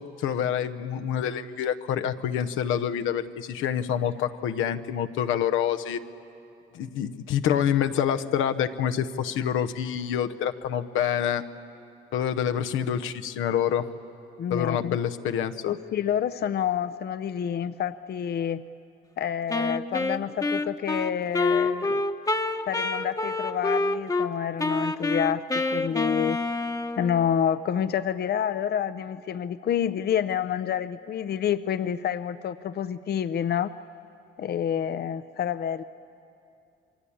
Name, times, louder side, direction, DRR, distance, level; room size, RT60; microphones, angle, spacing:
voice 1, 0.0-6.0 6.7-11.4 12.1-13.9 14.5-15.7, left 9 dB, 90° left, 8 dB, 1.0 m, -27 dB
voice 2, 14.4-15.0 15.7-18.6 19.2-22.0 22.7-26.4 27.0-33.7 34.4-35.8, left 9 dB, 55° left, 13 dB, 0.6 m, -28 dB
Wind instrument woodwind instrument, 19.5-24.3 24.6-27.2, left 2 dB, 15° left, 1.0 m, -27 dB
27.5 x 23.0 x 8.7 m, 2.7 s
cardioid pair, 90°, 20 cm